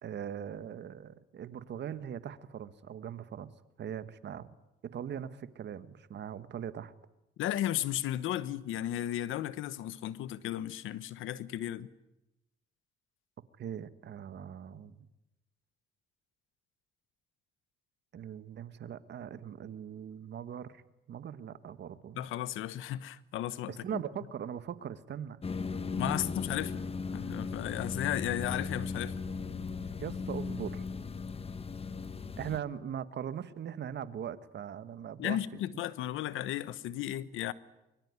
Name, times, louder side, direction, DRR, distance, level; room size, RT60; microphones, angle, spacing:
voice 1, 0.0-3.5 3.8-4.5 4.8-6.9 13.6-15.1 18.1-20.8 21.1-22.2 23.7-25.4 26.0-26.1 30.0-30.9 32.4-35.6, right 9 dB, 60° right, 1.6 m, -40 dB
voice 2, 7.4-11.9 22.2-24.0 26.0-26.8 27.1-29.2 35.2-37.5, left 13 dB, 90° left, 1.2 m, -34 dB
sound 1, 25.4-32.6, left 4 dB, 30° left, 1.3 m, -37 dB
23.5 x 23.0 x 9.9 m
cardioid pair, 90°, 20 cm